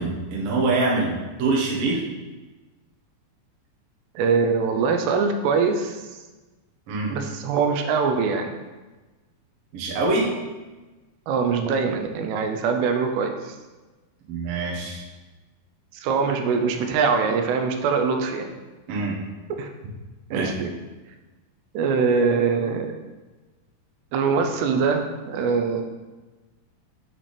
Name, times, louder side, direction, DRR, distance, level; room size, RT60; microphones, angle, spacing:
voice 1, 0.0-2.0 6.9-7.1 9.7-10.4 14.3-15.1 18.9-19.1 20.3-20.5, right 3 dB, 70° right, -4 dB, 1.5 m, -24 dB
voice 2, 4.2-6.2 7.1-8.5 11.3-13.6 15.9-18.5 19.6-19.7 20.3-20.7 21.7-22.9 24.1-25.8, right 5 dB, 90° right, 5 dB, 2.8 m, -23 dB
8.9 x 4.2 x 3.3 m, 1.2 s
omnidirectional pair, 4.7 m